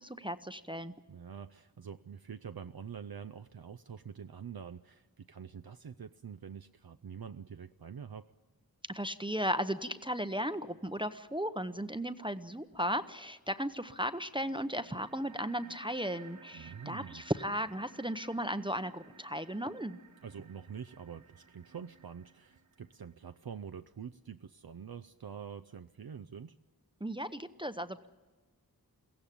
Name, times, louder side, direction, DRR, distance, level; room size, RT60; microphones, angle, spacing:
voice 1, 0.0-0.9 8.9-20.0 27.0-28.1, equal, 15° right, 11 dB, 0.8 m, -36 dB
voice 2, 1.1-8.3 16.5-17.2 20.2-26.5, right 7 dB, 70° right, 10 dB, 0.6 m, -46 dB
sound 1, 14.4-23.4, right 6 dB, 50° right, 1.3 m, -57 dB
22.5 x 16.0 x 10.0 m, 1.3 s
wide cardioid pair, 45°, 39 cm